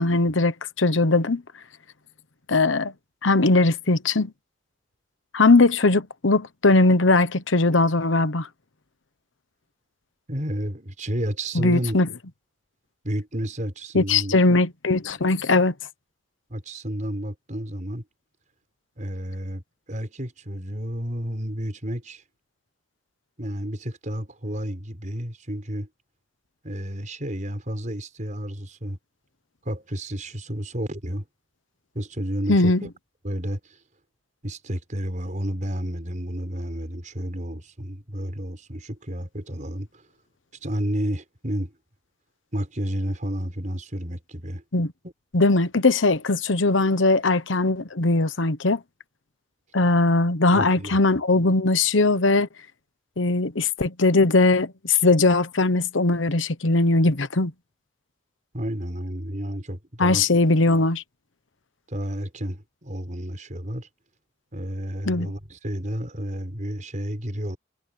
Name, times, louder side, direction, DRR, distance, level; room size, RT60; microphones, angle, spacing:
voice 1, 0.0-1.4 2.5-2.9 3.2-4.3 5.3-8.5 11.5-12.1 13.9-15.7 32.5-32.8 44.7-44.9 45.3-48.8 49.7-52.5 53.2-57.5 60.0-61.0 65.1-65.3, left 3 dB, 80° left, 1.1 m, -20 dB
voice 2, 10.3-12.0 13.0-14.3 16.5-18.0 19.0-19.6 19.9-22.2 23.4-25.9 26.6-29.0 29.7-31.3 31.9-32.9 33.2-33.7 34.4-40.0 40.6-41.7 42.5-44.6 45.0-45.1 50.5-51.0 58.5-60.2 61.9-63.9 64.5-67.6, equal, 40° right, 5.6 m, -31 dB
head